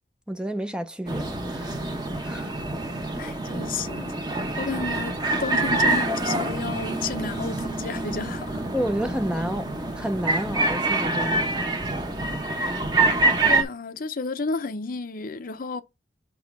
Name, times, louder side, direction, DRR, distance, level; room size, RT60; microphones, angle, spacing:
voice 1, 0.3-1.8 2.2-2.6 8.7-11.9, equal, 5° right, 0.5 m, -31 dB
sound 1, 1.1-13.6, right 2 dB, 25° right, 0.9 m, -26 dB
voice 2, 3.2-4.1 4.6-8.6 13.5-15.8, left 4 dB, 50° left, 0.6 m, -32 dB
6.1 x 3.8 x 5.9 m
head